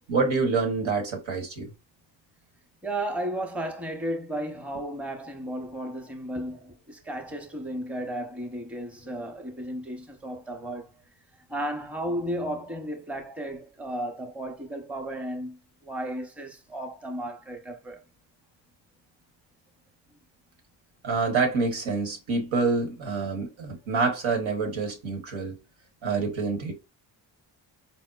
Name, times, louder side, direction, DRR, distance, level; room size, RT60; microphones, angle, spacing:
voice 1, 0.1-1.7 21.0-25.6 26.0-26.7, right 4 dB, 85° right, 1.1 m, -27 dB
voice 2, 2.8-10.9 11.5-18.0, right 1 dB, 5° right, 0.7 m, -34 dB
4.2 x 2.1 x 2.3 m
supercardioid pair, 45°, 46 cm